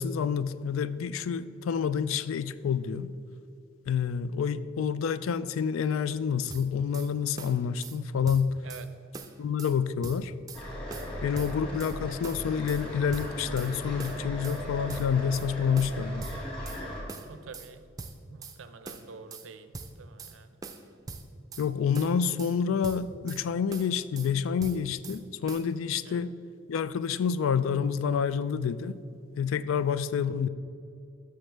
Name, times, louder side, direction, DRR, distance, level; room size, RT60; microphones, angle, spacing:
voice 1, 0.0-3.1 3.9-8.6 9.4-10.3 11.2-16.3 21.6-26.3 26.7-29.0 29.4-30.5, left 7 dB, 85° left, 15 dB, 0.3 m, -28 dB
sound 1, 6.5-7.1 7.4-8.0 8.3-8.9 9.1-9.8 10.0-10.6 10.9-12.0 12.2-12.8 13.1-13.7 14.0-14.6 14.9-15.5 15.8-16.8 17.1-17.7 18.0-18.6 18.9-19.5 19.7-20.4 20.6-21.7 21.9-22.6 22.8-23.4 23.7-24.3 24.6-25.2 25.5-25.7, right 4 dB, 20° right, 0.4 m, -42 dB
sound 2, 10.5-17.0, equal, 25° left, 2.1 m, -38 dB
voice 2, 17.3-17.9 18.3-20.6 26.0-26.2 29.8-30.0, right 4 dB, 80° right, 10 dB, 0.5 m, -48 dB
12.5 x 6.3 x 3.3 m, 2.5 s
head